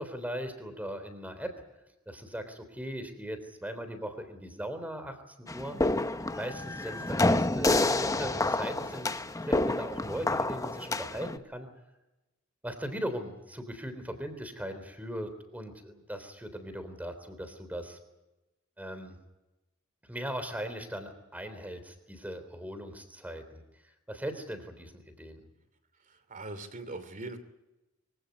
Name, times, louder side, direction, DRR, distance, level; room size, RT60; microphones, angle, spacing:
voice 1, 0.0-1.5 2.0-5.8 6.3-9.1 9.4-11.7 12.6-18.0 18.8-19.2 20.1-23.6 24.1-25.5, equal, 5° right, 9 dB, 3.5 m, -39 dB
sound 1, 5.5-11.4, left 2 dB, 15° left, 0.8 m, -28 dB
voice 2, 26.1-27.4, right 2 dB, 40° right, 11 dB, 2.8 m, -41 dB
24.5 x 16.5 x 9.6 m, 1.0 s
head